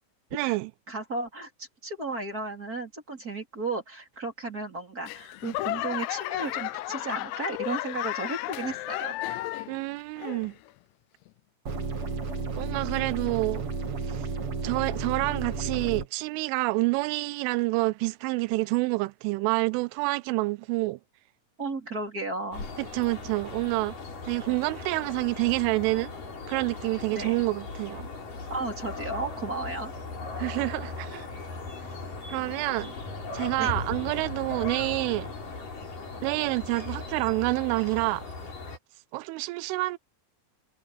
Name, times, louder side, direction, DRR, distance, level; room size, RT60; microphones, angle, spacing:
voice 1, 0.3-0.7 9.7-10.6 12.6-13.7 14.0-14.3 14.6-21.0 22.8-24.0 24.2-26.1 26.5-28.1 30.4-31.3 32.3-32.9 33.3-35.3 36.2-38.3 39.1-40.0, right 23 dB, 85° right, 2.9 m, -28 dB
voice 2, 0.9-9.1 21.6-22.7 27.1-27.4 28.5-29.9 33.6-33.7, right 3 dB, 20° right, 3.6 m, -34 dB
Laughter / Clapping / Crowd, 5.1-9.8 10.2-10.7 11.3-11.4, left 17 dB, 90° left, 2.4 m, -33 dB
sound 1, 11.7-16.1, right 4 dB, 40° right, 2.5 m, -32 dB
sound 2, 22.5-38.8, left 3 dB, 40° left, 7.5 m, -38 dB
omnidirectional pair, 5.8 m